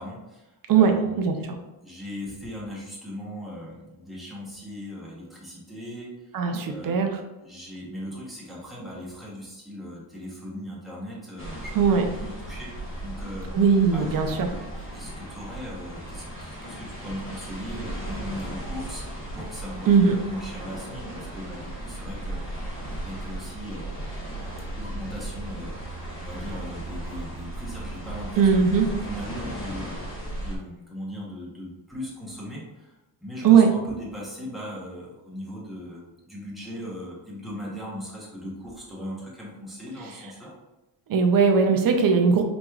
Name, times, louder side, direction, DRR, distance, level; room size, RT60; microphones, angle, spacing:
voice 1, 0.0-1.5 1.8-6.4 6.6-7.0 7.4-12.7 13.0-13.5 13.9-23.9 24.7-28.5 28.8-29.9 30.3-32.9 33.2-40.5, equal, ahead, -6 dB, 0.9 m, -39 dB
voice 2, 0.7-1.3 6.3-7.1 11.8-12.1 13.5-14.5 19.9-20.1 28.4-28.9 33.4-33.7 41.1-42.4, right 6 dB, 50° right, 4 dB, 0.5 m, -19 dB
sound 1, 11.4-30.6, right 1 dB, 25° left, 1.0 m, -36 dB
4.9 x 3.0 x 2.3 m, 1.1 s
wide cardioid pair, 170°, 46 cm